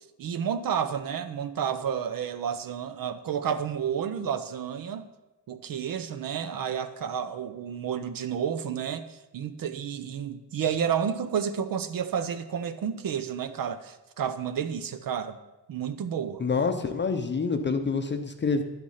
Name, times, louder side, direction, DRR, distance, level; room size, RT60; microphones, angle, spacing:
voice 1, 0.2-5.1 5.5-15.4 15.7-16.4, right 8 dB, 55° right, 11 dB, 0.7 m, -31 dB
voice 2, 16.4-18.6, left 4 dB, 25° left, 6 dB, 0.7 m, -27 dB
11.5 x 9.5 x 5.6 m, 1.1 s
wide cardioid pair, 170°, 41 cm